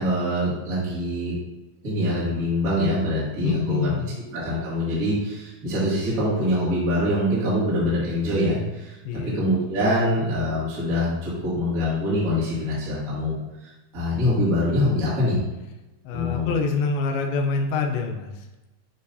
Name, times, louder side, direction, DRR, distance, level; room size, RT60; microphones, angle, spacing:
voice 1, 0.0-1.4 1.8-3.9 4.3-15.4 16.1-16.5, left 1 dB, 30° right, -9 dB, 1.9 m, -24 dB
voice 2, 3.4-4.2 9.1-9.4 16.0-18.5, left 4 dB, 80° left, 2 dB, 2.5 m, -26 dB
9.8 x 3.9 x 2.7 m, 1.1 s
omnidirectional pair, 4.5 m